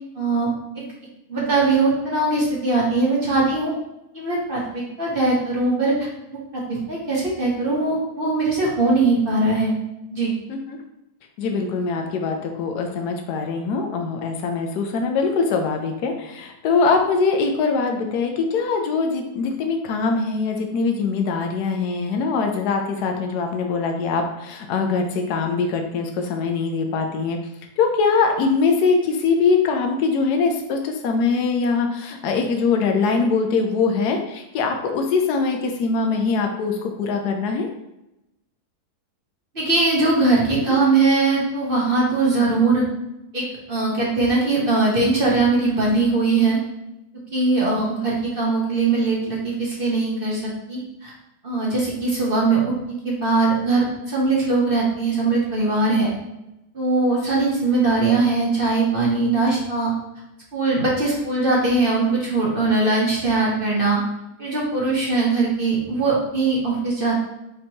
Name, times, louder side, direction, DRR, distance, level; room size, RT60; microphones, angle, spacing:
voice 1, 0.2-0.5 0.8-0.9 1.3-3.7 4.1-9.7 10.1-10.3 39.5-42.8 43.3-46.6 47.3-51.1 51.4-52.6 52.9-56.1 56.7-59.9 60.5-64.0 64.4-67.2, right 3 dB, 40° right, -4 dB, 0.9 m, -21 dB
voice 2, 11.4-27.4 27.8-37.7 40.6-40.8, left 4 dB, 80° left, 4 dB, 1.2 m, -22 dB
5.3 x 2.9 x 2.8 m, 0.91 s
omnidirectional pair, 1.7 m